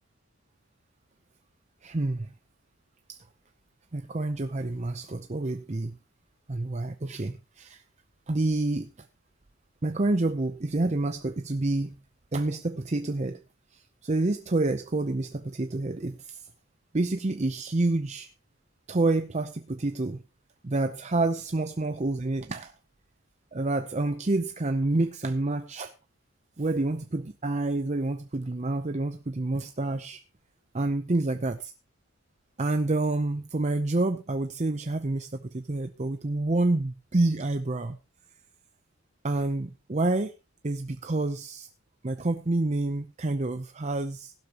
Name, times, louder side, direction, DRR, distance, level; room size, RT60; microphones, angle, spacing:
voice 1, 1.8-2.3 3.1-3.2 3.9-5.9 6.5-7.8 8.3-9.1 9.8-12.0 12.3-13.4 13.7-16.5 16.9-18.3 18.9-20.2 20.6-22.7 23.5-25.9 26.6-30.2 30.7-31.7 32.6-38.0 39.2-40.3 40.6-41.7 42.0-44.3, right 2 dB, 30° right, 9 dB, 0.6 m, -28 dB
16.0 x 12.0 x 2.9 m, 0.28 s
head